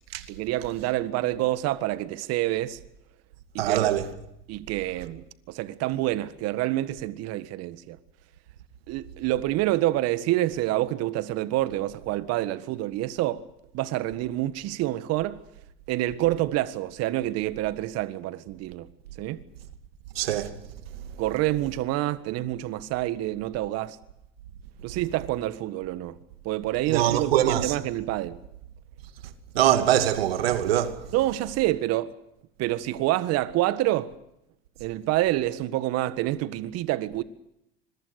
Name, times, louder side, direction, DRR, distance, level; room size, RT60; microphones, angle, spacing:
voice 1, 0.3-2.8 3.5-3.9 4.5-8.0 8.9-13.4 13.7-15.4 15.9-18.9 19.2-19.4 21.2-24.0 24.8-26.2 26.4-28.4 31.1-32.2 32.6-34.1 34.8-37.2, right 15 dB, 55° right, 1.7 m, -27 dB
voice 2, 3.6-4.1 20.2-20.5 26.9-27.7 29.5-31.0, right 11 dB, 80° right, 2.5 m, -23 dB
26.0 x 22.0 x 6.6 m
hypercardioid pair, 85°, 30 cm